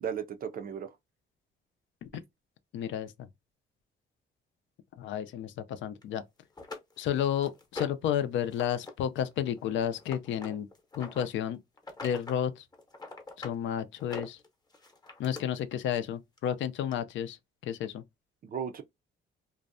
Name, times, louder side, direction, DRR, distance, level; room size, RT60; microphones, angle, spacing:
voice 1, 0.0-0.9 18.4-18.8, right 8 dB, 45° right, 0.4 m, -35 dB
voice 2, 2.7-3.3 5.0-6.2 7.0-10.7 10.9-11.6 12.0-12.7 13.4-14.4 15.2-17.4 17.6-18.0, left 9 dB, 70° left, 0.4 m, -31 dB
sound 1, 6.0-6.1 6.6-8.1 8.5-8.9 9.2-11.3 11.8-12.4 12.7-13.6 14.0-15.4 16.4-16.5 16.9-17.0, left 3 dB, 20° left, 0.8 m, -43 dB
2.5 x 2.1 x 2.5 m
cardioid pair, 90°, 20 cm